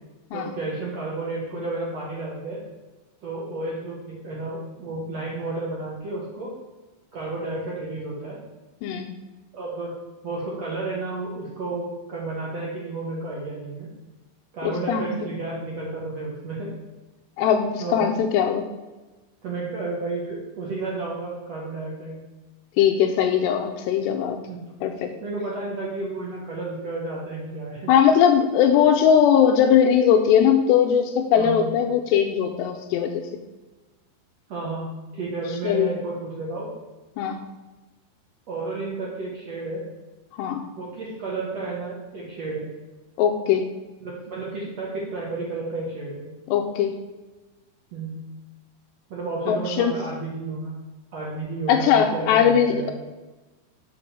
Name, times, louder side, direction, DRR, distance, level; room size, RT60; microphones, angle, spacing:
voice 1, 0.3-2.6 3.2-6.5 7.1-8.4 9.5-9.9 10.2-13.9 14.5-16.7 17.8-18.1 19.4-22.2 24.5-24.6 25.2-27.9 31.3-31.6 34.5-36.7 38.5-39.8 40.8-42.7 44.0-46.3 47.9-48.2 49.1-50.7 51.1-52.9, right 3 dB, 75° right, -4 dB, 1.5 m, -32 dB
voice 2, 14.6-15.1 17.4-18.7 22.8-24.4 24.8-25.1 27.9-33.2 35.6-35.9 37.2-37.4 40.4-40.6 43.2-43.6 46.5-46.9 49.5-49.9 51.7-52.9, left 8 dB, 80° left, 5 dB, 2.6 m, -20 dB
7.7 x 5.2 x 7.2 m, 1.2 s
omnidirectional pair, 5.2 m